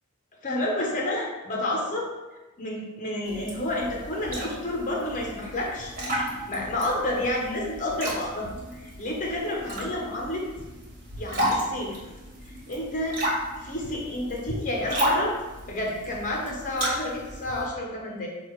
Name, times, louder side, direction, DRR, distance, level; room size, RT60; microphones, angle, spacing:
voice 1, 0.4-2.1 2.6-5.9 6.5-10.4 11.2-12.0 12.5-13.2 13.6-15.4 15.7-18.3, left 1 dB, 35° left, -2 dB, 1.3 m, -30 dB
sound 1, 3.2-17.6, equal, 40° right, 2.0 m, -33 dB
6.8 x 2.8 x 4.9 m, 1.1 s
head